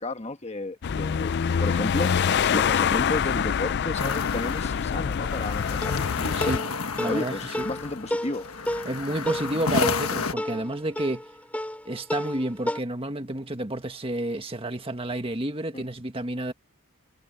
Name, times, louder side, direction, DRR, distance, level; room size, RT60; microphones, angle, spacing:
voice 1, 0.0-1.3 1.6-6.5 7.1-8.5 15.7-15.8, left 2 dB, 30° left, 1.3 m, -32 dB
sound 1, 0.8-6.6, left 7 dB, 50° left, 0.4 m, -25 dB
sound 2, 4.0-10.3, left 5 dB, 85° left, 1.3 m, -31 dB
sound 3, 5.8-12.8, left 1 dB, 5° left, 3.2 m, -32 dB
voice 2, 7.0-7.7 8.9-11.2 11.9-16.5, right 1 dB, 25° right, 1.7 m, -30 dB
head